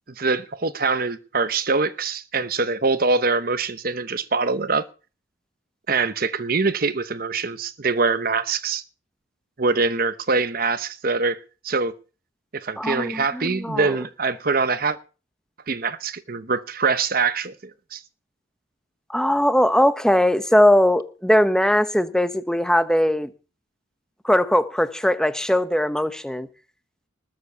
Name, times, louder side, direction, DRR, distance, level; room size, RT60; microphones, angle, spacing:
voice 1, 0.2-4.9 5.9-8.8 9.6-11.4 11.6-11.9 12.5-15.0 15.7-18.0, right 4 dB, 50° right, 0.9 m, -24 dB
voice 2, 12.8-14.0 19.1-23.3 24.2-26.5, left 1 dB, 5° left, 0.9 m, -20 dB
20.0 x 7.1 x 6.8 m
head